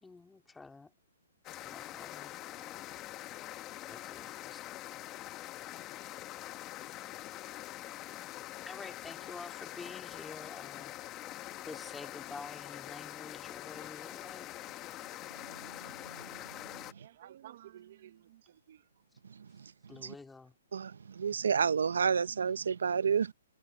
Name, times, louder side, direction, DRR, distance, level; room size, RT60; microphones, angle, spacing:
voice 1, 0.0-0.9 1.6-2.7 3.9-4.7 8.7-10.9 11.7-14.7 19.9-20.5, left 3 dB, 5° left, 2.1 m, -49 dB
sound 1, 1.4-16.9, left 15 dB, 20° left, 1.0 m, -44 dB
voice 2, 16.8-18.9, right 12 dB, 45° right, 0.9 m, -54 dB
voice 3, 20.7-23.3, right 6 dB, 85° right, 0.7 m, -29 dB
hypercardioid pair, 160°, 0 cm